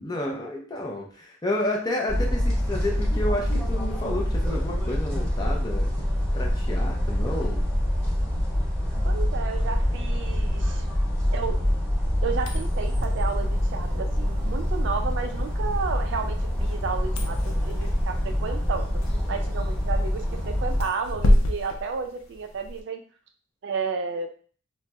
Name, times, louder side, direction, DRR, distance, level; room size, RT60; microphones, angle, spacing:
voice 1, 0.0-5.9 6.3-7.6, left 1 dB, 20° left, -1 dB, 0.5 m, -30 dB
sound 1, 2.1-20.8, equal, 5° left, 1.3 m, -25 dB
voice 2, 9.0-10.8 11.3-11.6 12.2-19.0 19.3-23.0 23.6-24.3, right 5 dB, 55° right, 5 dB, 0.3 m, -32 dB
sound 2, 12.3-22.8, left 1 dB, 75° left, 0.5 m, -30 dB
4.1 x 2.0 x 2.2 m, 0.44 s
head